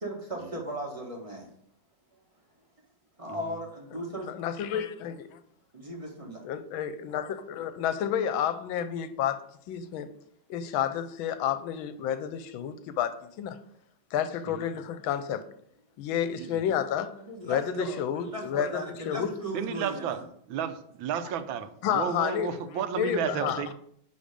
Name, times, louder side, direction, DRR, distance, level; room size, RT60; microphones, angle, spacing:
voice 1, 0.0-1.4 3.2-4.3 5.7-6.4 17.2-20.2, right 1 dB, 20° right, 0 dB, 1.1 m, -37 dB
voice 2, 3.3-3.6 14.5-14.7 16.4-16.6 19.5-20.2 20.5-23.7, right 8 dB, 80° right, 10 dB, 1.4 m, -33 dB
voice 3, 4.2-5.4 6.4-9.4 9.7-10.1 10.5-13.6 14.1-15.4 16.0-17.1 17.4-19.3 21.8-22.5 23.0-23.6, left 9 dB, 80° left, 11 dB, 1.4 m, -30 dB
9.6 x 3.3 x 5.1 m, 0.67 s
omnidirectional pair, 2.2 m